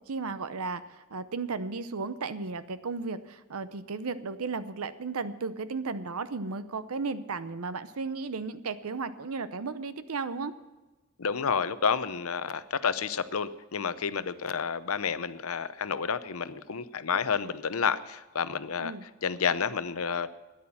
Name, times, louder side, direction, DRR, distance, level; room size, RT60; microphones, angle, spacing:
voice 1, 0.1-10.5 18.8-19.0, right 4 dB, 90° right, 13 dB, 0.7 m, -34 dB
voice 2, 11.2-18.9 19.2-20.3, left 6 dB, 85° left, 14 dB, 0.7 m, -30 dB
13.0 x 10.5 x 7.1 m, 1.1 s
head